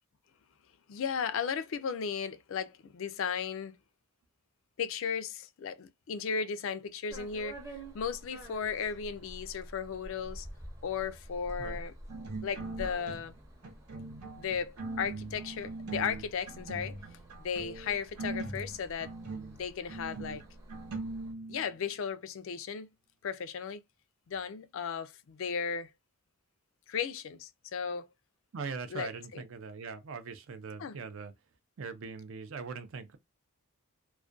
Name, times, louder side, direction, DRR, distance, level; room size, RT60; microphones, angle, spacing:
voice 1, 0.9-3.8 4.8-7.6 7.9-10.5 10.8-11.9 12.4-13.3 14.4-17.0 17.4-19.1 19.5-20.4 21.5-22.9 23.2-23.8 24.3-25.9 26.9-28.1 28.9-29.4 30.8-31.0, left 6 dB, 60° left, 0.3 m, -35 dB
sound 1, 7.1-21.3, right 1 dB, 15° right, 0.6 m, -49 dB
sound 2, 12.1-13.4 13.6-21.8, right 3 dB, 85° right, 0.8 m, -41 dB
voice 2, 28.5-31.3 31.8-33.2, right 5 dB, 60° right, 0.4 m, -41 dB
2.3 x 2.2 x 2.4 m
head